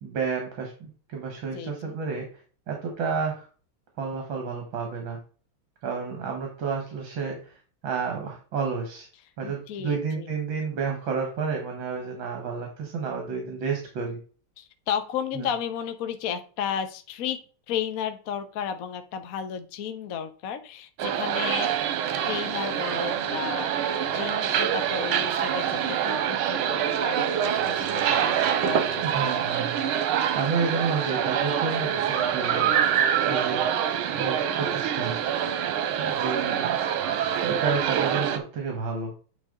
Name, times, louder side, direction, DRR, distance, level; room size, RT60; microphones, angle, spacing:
voice 1, 0.0-2.3 2.7-3.5 4.0-5.2 5.8-7.6 7.8-9.1 9.4-14.2 15.3-15.5 29.0-32.8 33.3-33.6 34.2-35.2 36.0-37.0 37.4-39.1, right 5 dB, 70° right, 2 dB, 2.1 m, -31 dB
voice 2, 1.5-2.0 9.4-10.3 14.6-17.4 17.7-21.7 22.2-29.5 36.5-36.6, left 8 dB, 55° left, 9 dB, 1.0 m, -33 dB
sound 1, 21.0-38.4, right 9 dB, 85° right, 1.6 m, -25 dB
9.2 x 4.0 x 3.7 m, 0.39 s
omnidirectional pair, 2.3 m